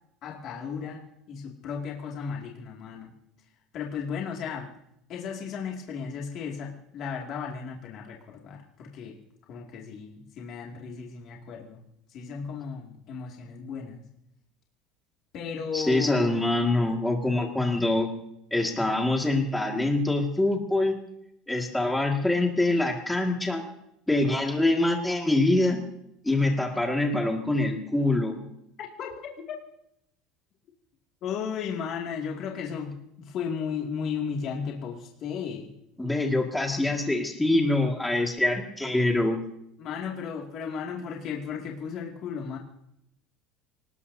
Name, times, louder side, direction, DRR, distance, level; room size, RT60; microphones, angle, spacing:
voice 1, 0.2-3.1 3.7-4.7 5.1-9.2 9.5-11.8 12.1-14.1 15.3-16.4 28.8-29.6 31.2-35.7 39.8-42.6, left 6 dB, 40° left, -1 dB, 2.2 m, -35 dB
voice 2, 15.7-18.1 18.5-21.0 21.5-23.6 24.1-25.8 26.2-28.3 36.0-39.4, left 2 dB, 5° left, 2 dB, 1.9 m, -24 dB
26.0 x 18.5 x 2.7 m, 0.78 s
cardioid pair, 165°, 0 cm